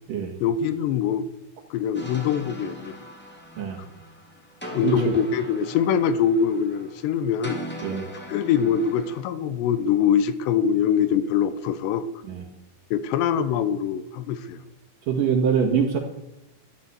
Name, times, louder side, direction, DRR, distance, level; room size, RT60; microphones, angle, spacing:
voice 1, 0.4-1.2 1.7-2.9 4.7-7.6 8.3-12.1 12.9-14.6, left 8 dB, 75° left, 13 dB, 2.9 m, -23 dB
sound 1, 1.9-9.2, right 1 dB, 5° left, 2.0 m, -40 dB
voice 2, 4.8-5.1 7.8-8.1 12.3-12.4 15.1-16.0, right 6 dB, 60° right, 4 dB, 2.9 m, -23 dB
12.0 x 11.5 x 8.2 m, 0.89 s
omnidirectional pair, 5.2 m